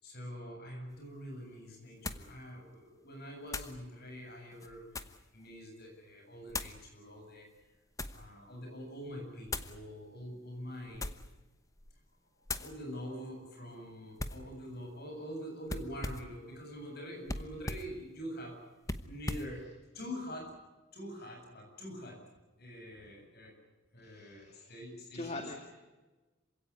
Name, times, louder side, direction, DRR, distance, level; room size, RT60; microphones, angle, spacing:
voice 1, 0.0-4.9 5.3-7.5 8.1-11.1 12.5-18.6 19.1-19.6 19.9-20.5 20.9-22.2 22.6-23.6 23.9-25.4, equal, 50° left, 2 dB, 7.8 m, -45 dB
sound 1, 0.9-1.0 2.0-2.3 3.5-3.8 4.5-5.3 6.5-6.8 7.6-8.3 9.5-9.8 10.9-11.4 11.8-12.0 12.5-12.7 14.2-14.5 15.7-16.4 17.3-17.9 18.8-19.5, left 2 dB, 15° left, 1.0 m, -39 dB
voice 2, 24.0-24.8 25.1-25.6, left 2 dB, 30° left, 4 dB, 2.0 m, -43 dB
27.0 x 17.0 x 9.9 m, 1.2 s
head